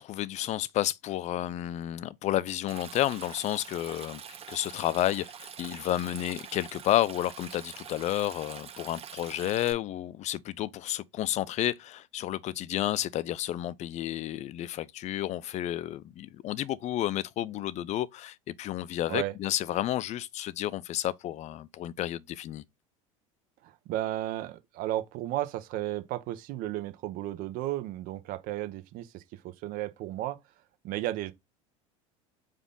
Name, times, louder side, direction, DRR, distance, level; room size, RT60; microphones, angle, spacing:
voice 1, 0.0-22.6, left 13 dB, 40° left, 0.5 m, -31 dB
Stream, 2.7-9.7, right 8 dB, 35° right, 1.1 m, -45 dB
voice 2, 23.6-30.4 30.8-31.3, right 14 dB, 55° right, 0.8 m, -34 dB
5.0 x 2.6 x 3.8 m
hypercardioid pair, 80°, 17 cm